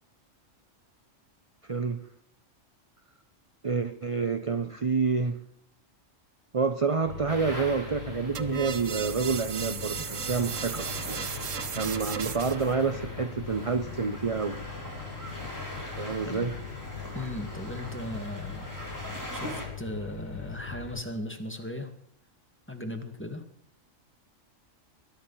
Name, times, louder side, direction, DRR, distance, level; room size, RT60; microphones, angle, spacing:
voice 1, 1.7-2.0 3.6-5.4 6.5-11.3 11.7-14.6 16.0-16.5, right 5 dB, 30° right, 9 dB, 0.8 m, -28 dB
sound 1, 7.0-21.0, left 7 dB, 85° left, 1.9 m, -41 dB
sound 2, 7.3-19.6, equal, 15° right, 4.8 m, -42 dB
sound 3, 8.3-12.7, right 8 dB, 70° right, 1.3 m, -36 dB
voice 2, 17.1-18.7 19.3-21.9 22.7-23.4, left 1 dB, 10° left, 5 dB, 2.0 m, -37 dB
21.5 x 11.0 x 5.7 m, 0.71 s
omnidirectional pair, 1.4 m